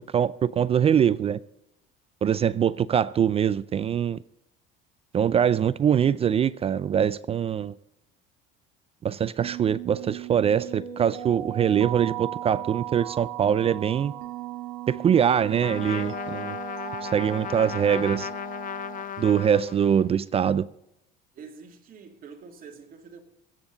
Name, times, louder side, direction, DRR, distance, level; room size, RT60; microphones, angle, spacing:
voice 1, 0.0-1.4 2.2-4.2 5.1-7.7 9.0-14.1 14.9-16.6 17.0-18.3 19.2-20.7, right 8 dB, 30° right, 0.4 m, -23 dB
sound 1, 9.4-19.0, right 12 dB, 85° right, 2.5 m, -37 dB
Trumpet, 15.6-20.2, left 10 dB, 45° left, 0.6 m, -35 dB
voice 2, 21.3-23.2, right 5 dB, 45° right, 2.6 m, -46 dB
21.5 x 8.9 x 3.9 m
cardioid pair, 110°, 20 cm